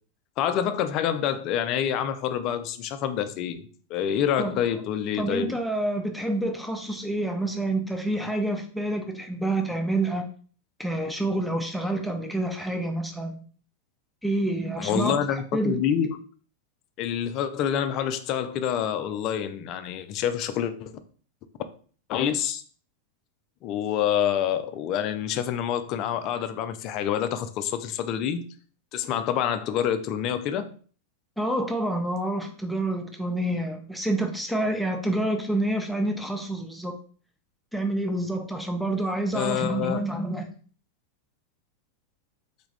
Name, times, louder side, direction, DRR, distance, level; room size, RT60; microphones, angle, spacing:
voice 1, 0.4-5.5 14.8-16.2 17.0-20.9 22.1-22.6 23.6-28.5 28.9-30.7 39.3-40.0, left 9 dB, 40° left, 11 dB, 0.5 m, -27 dB
voice 2, 5.2-10.2 10.8-13.4 14.2-15.8 31.4-36.9 37.7-40.5, right 1 dB, ahead, 3 dB, 0.7 m, -28 dB
4.0 x 3.5 x 3.3 m, 0.43 s
figure-of-eight pair, 90°, 0 cm